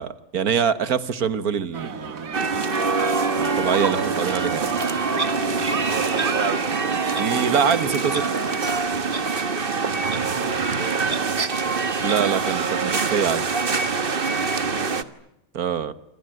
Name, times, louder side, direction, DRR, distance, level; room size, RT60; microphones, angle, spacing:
voice 1, 0.0-2.4 3.4-4.7 7.2-8.2 12.0-13.5 15.5-15.9, right 7 dB, 90° right, 14 dB, 1.9 m, -24 dB
sound 1, 1.7-8.2, right 5 dB, 70° right, 2.0 m, -34 dB
sound 2, 2.3-15.0, right 4 dB, 40° right, 1.5 m, -24 dB
Clock, 5.2-5.3 6.2-6.3 7.1-7.3 8.1-8.2 9.1-9.2 10.1-10.2 11.1-11.2 12.1-12.2, right 3 dB, 25° right, 1.5 m, -31 dB
voice 2, 5.4-6.6 9.6-12.1 14.7-15.1, left 1 dB, 40° left, 8 dB, 2.8 m, -41 dB
28.5 x 26.5 x 7.8 m, 0.79 s
omnidirectional pair, 1.5 m